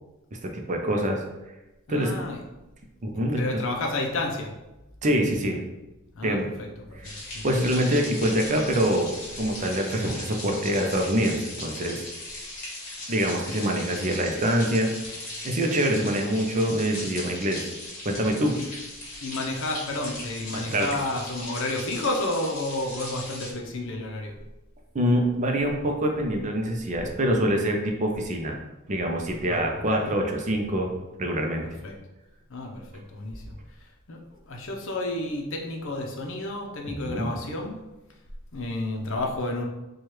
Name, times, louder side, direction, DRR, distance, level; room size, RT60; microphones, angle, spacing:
voice 1, 0.4-1.2 1.9-2.1 3.0-3.4 5.0-5.6 6.2-6.5 6.9-7.1 7.4-9.1 9.4-12.1 13.1-14.9 15.4-17.7 18.0-18.6 20.5-20.9 24.9-28.6 28.9-30.9 31.2-31.7 37.0-37.3, equal, 35° right, 2 dB, 0.5 m, -25 dB
voice 2, 1.9-2.4 3.2-4.5 6.2-7.4 19.2-24.3 29.4-29.6 29.9-30.1 31.6-32.0 32.5-33.5 34.1-34.2 34.5-37.8 38.5-39.6, left 2 dB, 60° left, 1 dB, 0.6 m, -31 dB
sound 1, 7.0-23.5, left 2 dB, 40° left, 1.4 m, -38 dB
4.5 x 2.3 x 3.1 m, 1.0 s
head